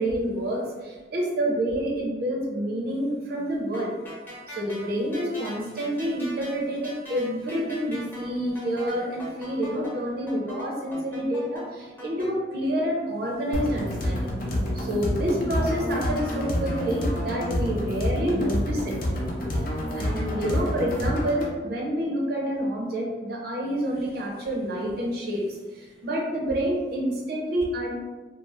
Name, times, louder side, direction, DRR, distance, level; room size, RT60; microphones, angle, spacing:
voice 1, 0.0-3.9 4.5-14.3 14.7-19.0 19.5-27.9, equal, 55° right, -2 dB, 0.6 m, -28 dB
sound 1, 3.7-12.3, equal, 10° left, 0.7 m, -42 dB
sound 2, 13.5-21.5, equal, 50° left, 0.5 m, -28 dB
2.6 x 2.0 x 3.2 m, 1.3 s
head